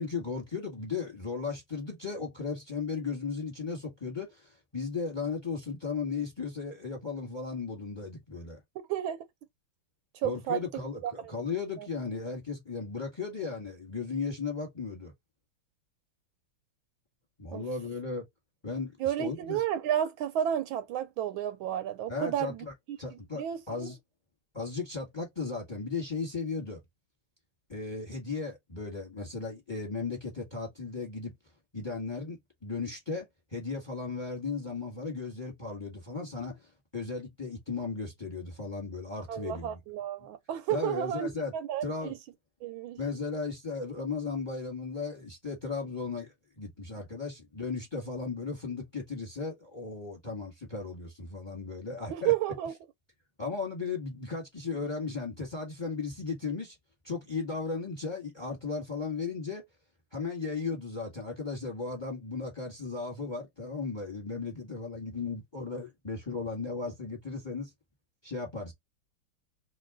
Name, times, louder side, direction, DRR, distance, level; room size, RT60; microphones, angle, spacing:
voice 1, 0.0-8.6 10.2-15.1 17.4-18.2 18.6-19.6 22.1-22.7 23.0-24.0 24.5-26.8 27.7-31.3 31.7-33.3 33.5-39.8 40.7-41.5 41.8-42.1 43.0-52.3 53.4-56.8 57.0-59.6 60.1-67.7 68.2-68.7, left 4 dB, 15° left, 1.5 m, -36 dB
voice 2, 8.9-9.3 10.1-10.6 11.0-11.3 11.8-11.9 17.5-17.6 19.0-23.9 39.3-42.2 42.6-43.0 52.1-52.7, right 11 dB, 75° right, 1.3 m, -32 dB
3.1 x 2.8 x 3.7 m
omnidirectional pair, 2.3 m